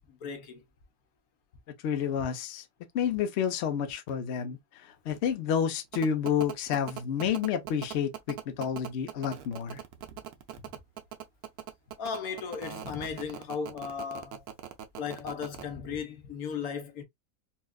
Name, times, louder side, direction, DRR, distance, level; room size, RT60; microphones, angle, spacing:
voice 1, 0.1-0.6 12.0-14.4 15.0-17.0, left 6 dB, 80° left, 1.3 m, -36 dB
voice 2, 1.8-2.6 2.9-4.6 5.1-9.8, left 8 dB, 60° left, 0.8 m, -29 dB
sound 1, 5.9-15.6, right 11 dB, 80° right, 1.2 m, -40 dB
4.3 x 2.3 x 2.3 m
omnidirectional pair, 1.6 m